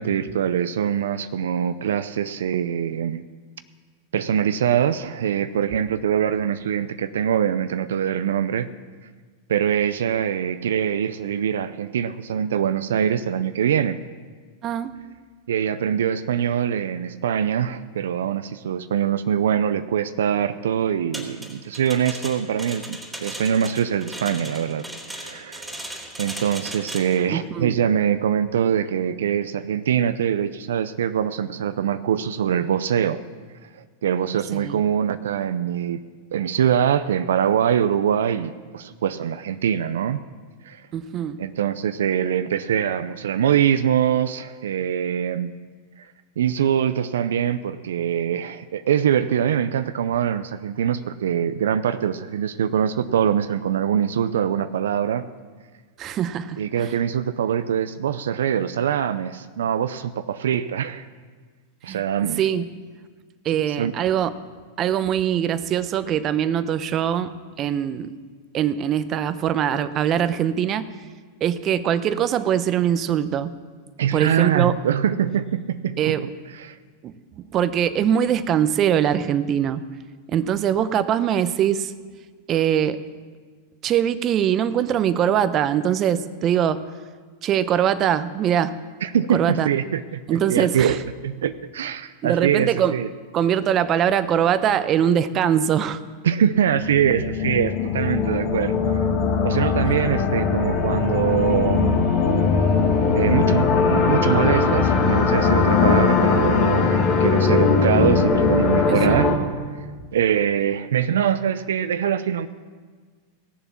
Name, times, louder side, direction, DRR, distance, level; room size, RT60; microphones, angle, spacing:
voice 1, 0.0-3.2 4.1-8.7 9.5-14.0 15.5-25.8 26.2-33.2 34.0-36.0 36.3-40.2 40.6-40.9 41.4-45.5 46.0-46.1 46.4-55.3 56.6-61.1 61.8-62.4 63.7-63.9 74.0-76.8 89.0-93.1 96.2-98.7 99.4-102.0 103.1-109.3 110.1-112.5, right 9 dB, 80° right, 12 dB, 0.5 m, -23 dB
sound 1, 21.1-27.2, right 1 dB, 5° right, 3.4 m, -37 dB
voice 2, 27.3-27.7 34.5-34.8 40.9-41.4 56.0-57.0 61.9-62.0 62.4-62.7 63.4-64.3 64.8-67.3 67.6-68.1 68.5-70.9 71.4-73.5 74.0-74.7 76.0-76.2 77.0-77.1 77.5-79.8 80.3-81.9 82.5-83.0 83.8-86.8 87.4-88.8 89.3-89.7 90.3-91.0 92.2-93.0 93.3-96.0 108.9-109.4, right 9 dB, 40° right, 13 dB, 0.7 m, -22 dB
sound 2, 96.6-109.4, left 5 dB, 50° left, 2.1 m, -20 dB
17.0 x 7.0 x 7.2 m, 1.5 s
hypercardioid pair, 105°, 0 cm